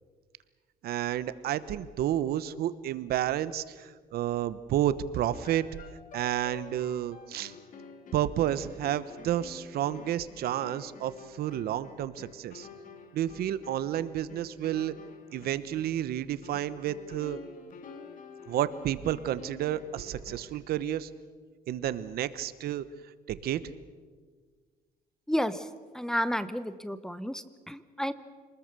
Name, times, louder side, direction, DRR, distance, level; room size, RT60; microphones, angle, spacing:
voice 1, 0.8-5.7 6.1-7.5 8.1-12.7 13.1-14.9 15.3-17.4 18.5-21.1 21.7-22.8 23.3-23.7, right 11 dB, 70° right, 15 dB, 1.1 m, -31 dB
sound 1, 5.3-20.6, left 5 dB, 55° left, 2.5 m, -49 dB
voice 2, 25.3-25.7 25.9-28.1, equal, 5° left, 14 dB, 0.9 m, -31 dB
27.5 x 20.5 x 6.8 m, 1.5 s
cardioid pair, 125°, 17 cm